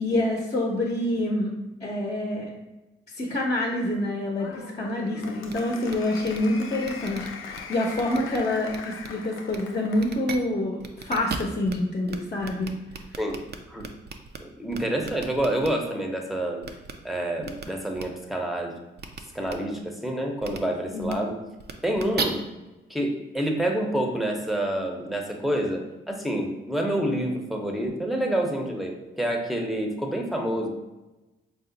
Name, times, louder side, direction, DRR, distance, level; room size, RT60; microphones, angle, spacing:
voice 1, 0.0-1.5 1.8-2.5 3.2-12.8 20.9-21.2, left 1 dB, 35° left, -1 dB, 0.7 m, -27 dB
Applause, 4.4-10.2, left 5 dB, 80° left, 0.5 m, -41 dB
sound 1, 5.5-5.6 5.9-6.0 6.2-6.4 6.8-7.6 7.9-8.4 8.7-9.1 9.5-9.6 10.0-10.4 10.8-11.7 12.1-12.2 12.4-14.4 14.7-15.7 16.6-16.9 17.4-17.6 18.0-18.1 19.0-19.2 19.5-19.6 20.4-20.6 21.0-21.1 21.6-22.2, right 6 dB, 50° right, 0.5 m, -36 dB
voice 2, 14.6-16.6 17.0-18.7 19.3-21.4 21.8-22.5 22.9-30.7, right 1 dB, ahead, 1 dB, 0.7 m, -28 dB
4.8 x 2.0 x 3.9 m, 1.0 s
cardioid pair, 75°, 21 cm